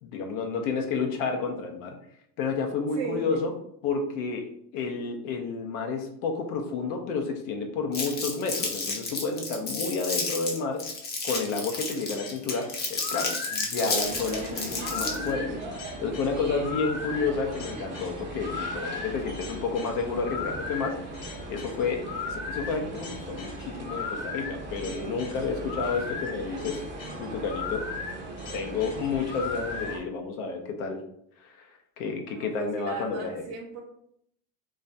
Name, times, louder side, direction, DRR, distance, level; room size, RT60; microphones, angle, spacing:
voice 1, 0.0-2.0 2.4-3.5 3.8-10.8 11.2-15.6 16.0-21.0 21.5-26.8 27.2-27.9 28.5-31.0 31.4-31.7 32.0-33.4, left 4 dB, 65° left, 4 dB, 0.6 m, -30 dB
voice 2, 3.0-3.4 13.8-14.1 24.8-25.3 32.3-33.8, right 3 dB, 65° right, 0 dB, 0.7 m, -36 dB
Crumpling crinkling, 7.9-15.3, left 3 dB, 20° left, 0.5 m, -31 dB
sound 1, 12.1-30.0, left 5 dB, 45° left, 0.9 m, -37 dB
sound 2, 14.0-30.0, right 2 dB, 25° right, 0.5 m, -39 dB
2.3 x 2.1 x 2.5 m, 0.71 s
hypercardioid pair, 95°, 47 cm